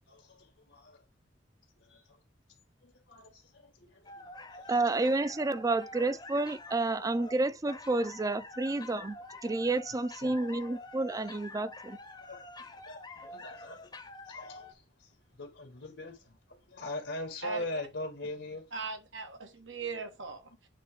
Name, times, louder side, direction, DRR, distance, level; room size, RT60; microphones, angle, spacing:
voice 1, 0.1-1.0 1.9-2.0 2.8-4.1 4.4-4.6 8.7-8.8 10.2-10.3 12.3-12.4 12.8-13.9 14.3-14.8 15.4-16.4 16.7-18.6, left 1 dB, 85° left, 1.8 m, -41 dB
sound 1, 4.1-14.7, left 2 dB, 25° left, 0.8 m, -47 dB
voice 2, 4.7-9.2 9.4-12.0, right 2 dB, 20° right, 0.4 m, -30 dB
voice 3, 18.7-20.7, right 4 dB, 90° right, 1.4 m, -39 dB
8.5 x 3.0 x 5.0 m
head